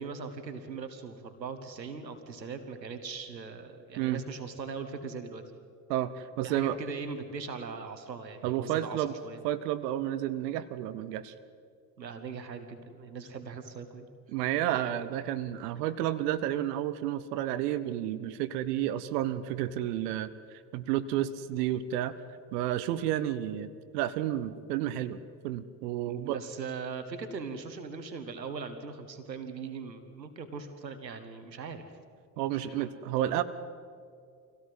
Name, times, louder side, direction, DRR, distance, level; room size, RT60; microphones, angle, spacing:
voice 1, 0.0-5.4 6.4-9.4 12.0-14.1 26.0-31.8 32.4-32.8, right 5 dB, 90° right, 8 dB, 1.6 m, -40 dB
voice 2, 5.9-6.8 8.4-9.1 9.4-11.3 14.3-22.1 22.5-25.2 25.4-26.4 32.4-33.4, right 12 dB, 70° right, 13 dB, 1.0 m, -31 dB
25.0 x 17.0 x 7.9 m, 2.2 s
figure-of-eight pair, 55°, 49 cm